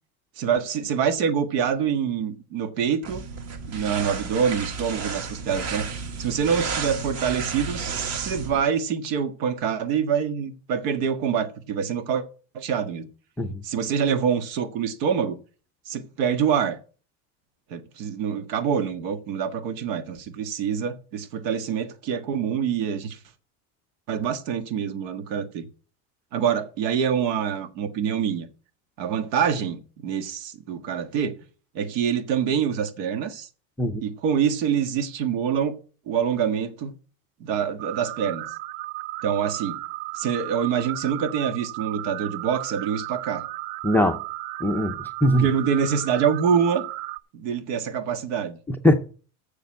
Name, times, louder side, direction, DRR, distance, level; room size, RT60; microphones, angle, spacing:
voice 1, 0.4-3.3 3.7-5.9 6.2-12.2 12.5-13.1 13.6-15.4 15.9-16.8 17.7-23.2 24.1-25.7 26.3-28.5 29.0-31.3 31.7-33.5 34.0-35.8 36.1-36.9 37.4-38.4 39.2-39.8 40.1-43.4 45.3-46.8 47.3-48.6, right 7 dB, 70° right, 1.7 m, -25 dB
sound 1, 3.0-8.6, right 5 dB, 35° right, 1.6 m, -32 dB
sound 2, 37.8-47.2, right 17 dB, 55° right, 0.6 m, -35 dB
voice 2, 43.8-44.2 44.6-44.9 45.2-45.5 48.7-48.9, equal, 5° left, 0.5 m, -20 dB
7.0 x 6.6 x 7.7 m
supercardioid pair, 140°, 44 cm